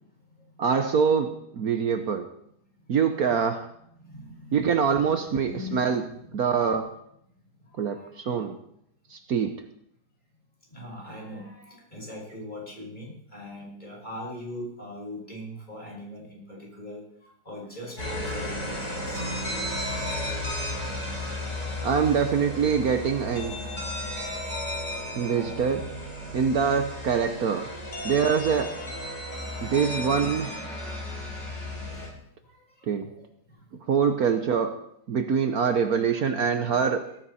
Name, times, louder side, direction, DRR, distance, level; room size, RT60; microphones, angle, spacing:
voice 1, 0.6-2.3 2.9-3.7 4.5-6.0 6.3-6.9 7.8-8.6 9.1-9.6 21.8-23.6 25.1-25.9 26.3-27.7 28.0-28.8 29.6-30.6 32.9-33.1 33.9-34.8 35.1-37.1, right 6 dB, 60° right, 7 dB, 1.4 m, -24 dB
voice 2, 4.0-5.8 7.6-8.5 10.7-19.2 21.1-21.8 24.9-25.6 26.1-26.8 30.8-32.0 32.4-33.7 36.5-36.8, left 1 dB, 25° left, -2 dB, 6.0 m, -42 dB
sound 1, 18.0-32.1, left 1 dB, 45° left, 6.0 m, -34 dB
17.5 x 14.5 x 4.3 m, 0.72 s
omnidirectional pair, 1.8 m